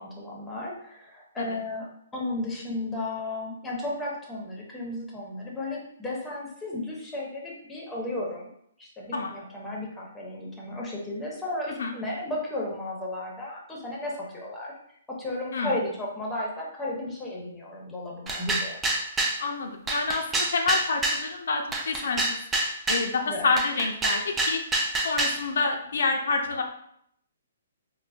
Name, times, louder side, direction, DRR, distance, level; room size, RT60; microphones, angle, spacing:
voice 1, 0.0-1.9 2.1-8.5 8.8-14.7 15.1-18.8 23.3-23.5, left 1 dB, 5° left, -3 dB, 0.7 m, -34 dB
sound 1, 18.3-19.4 19.9-21.2 21.7-23.1 23.6-25.4, right 2 dB, 10° right, 0.3 m, -27 dB
voice 2, 19.4-22.4 22.9-24.6 25.0-26.6, left 4 dB, 70° left, 3 dB, 0.4 m, -28 dB
3.7 x 2.0 x 2.4 m, 0.71 s
hypercardioid pair, 145°, 0 cm